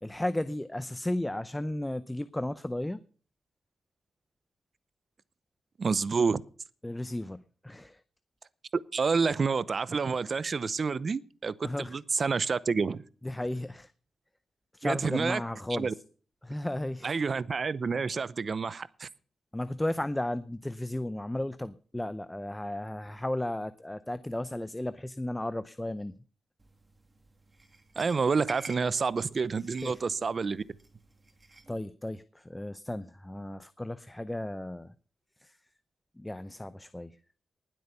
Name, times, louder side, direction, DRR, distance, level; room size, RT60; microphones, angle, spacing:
voice 1, 0.0-3.0 6.8-8.0 11.6-12.0 13.2-13.9 14.7-16.0 16.4-17.1 19.5-26.2 29.8-30.1 31.7-34.9 35.4-35.6 36.2-37.2, left 1 dB, 10° left, 14 dB, 0.6 m, -34 dB
voice 2, 5.8-6.4 8.9-13.0 14.8-15.4 15.7-15.9 17.0-19.1 28.0-30.6, right 5 dB, 45° right, 19 dB, 0.7 m, -29 dB
sound 1, 26.6-31.8, right 2 dB, 25° right, 2.6 m, -50 dB
19.5 x 7.9 x 5.5 m, 0.41 s
cardioid pair, 95°, 0 cm